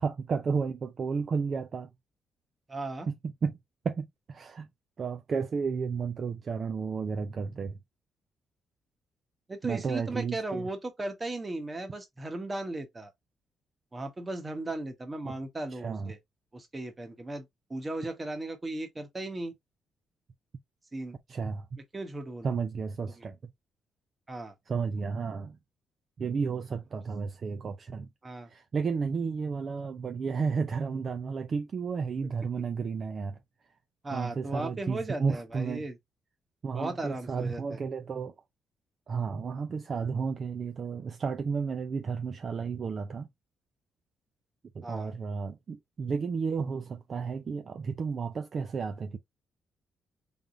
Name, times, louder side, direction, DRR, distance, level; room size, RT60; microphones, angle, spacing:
voice 1, 0.0-1.9 3.1-3.6 3.8-4.7 5.0-7.8 9.6-10.7 15.2-15.4 15.7-16.1 21.3-21.7 22.4-23.5 24.7-25.6 26.2-28.1 28.5-33.4 34.1-35.9 36.6-38.3 39.1-43.3 44.7-49.2, right 5 dB, 45° right, 0.6 m, -32 dB
voice 2, 2.7-3.1 9.5-13.1 13.9-16.2 16.5-17.4 17.7-19.5 20.9-21.2 21.9-22.5 23.2-23.3 24.3-24.5 28.2-28.5 34.0-36.0 36.7-37.8 44.8-45.1, right 2 dB, 25° right, 1.3 m, -36 dB
3.7 x 3.5 x 2.7 m
cardioid pair, 100°, 0 cm